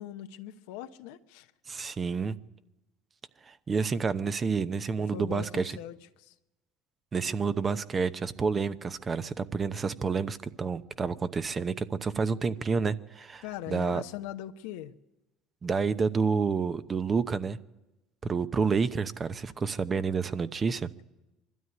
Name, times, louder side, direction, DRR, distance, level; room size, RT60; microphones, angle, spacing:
voice 1, 0.0-1.5 5.1-6.3 13.4-14.9, left 12 dB, 80° left, 0.9 m, -40 dB
voice 2, 1.7-2.4 3.4-5.7 7.1-14.0 15.6-17.6 18.2-20.9, right 5 dB, 35° right, 0.8 m, -29 dB
22.5 x 12.5 x 9.6 m
hypercardioid pair, 80°, 0 cm